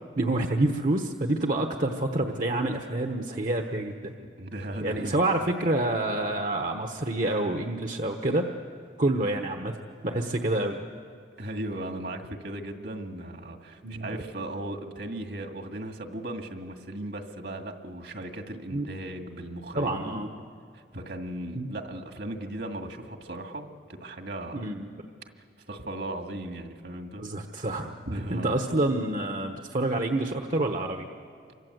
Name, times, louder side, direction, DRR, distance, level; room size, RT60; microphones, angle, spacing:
voice 1, 0.2-4.1 4.8-8.4 9.0-9.8 10.0-10.8 13.8-14.1 18.7-18.9 19.7-20.3 21.5-21.7 24.5-24.9 27.2-27.9 28.3-31.1, right 2 dB, 45° right, 4 dB, 1.1 m, -27 dB
voice 2, 4.2-5.2 11.4-20.3 20.7-24.7 25.7-27.2 28.1-28.6, right 1 dB, 65° right, 5 dB, 2.0 m, -37 dB
28.5 x 24.5 x 8.0 m, 2.2 s
head